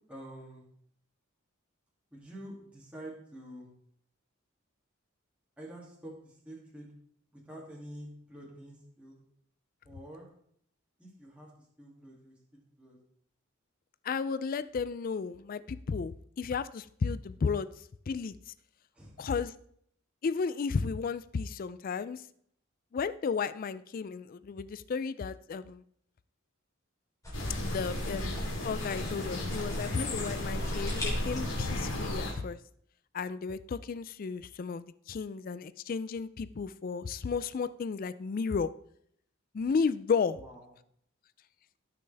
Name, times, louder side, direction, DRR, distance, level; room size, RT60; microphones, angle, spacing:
voice 1, 0.1-0.6 2.1-3.7 5.6-6.9 7.3-9.2 9.8-10.3 11.0-11.5 11.8-13.0 18.9-19.2 27.6-28.0 40.4-40.7, right 1 dB, 5° right, -6 dB, 2.5 m, -48 dB
voice 2, 14.0-17.7 18.1-18.5 19.2-19.5 20.2-22.2 22.9-25.8 27.6-32.6 33.1-38.7 39.5-40.4, left 5 dB, 45° left, 15 dB, 0.3 m, -33 dB
sound 1, 27.2-32.3, equal, 15° left, 3.6 m, -36 dB
sound 2, 27.3-32.3, left 2 dB, 70° left, 2.4 m, -36 dB
17.0 x 6.7 x 3.4 m, 0.68 s
head